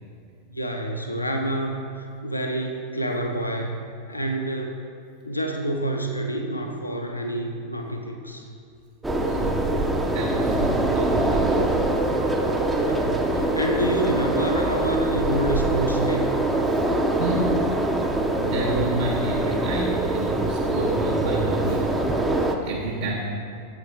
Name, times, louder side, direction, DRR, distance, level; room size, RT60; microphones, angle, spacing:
voice 1, 0.5-3.8 4.1-4.8 5.2-8.5 12.8-16.3, right 1 dB, 85° left, 2 dB, 0.5 m, -28 dB
sound 1, 9.0-22.6, right 2 dB, 10° right, 0.5 m, -23 dB
voice 2, 9.2-9.7 10.0-11.6 16.7-16.9 17.2-17.6 18.4-21.9 22.6-23.2, right 2 dB, 65° right, -6 dB, 0.9 m, -29 dB
8.2 x 5.2 x 3.0 m, 2.3 s
figure-of-eight pair, 90°, 0 cm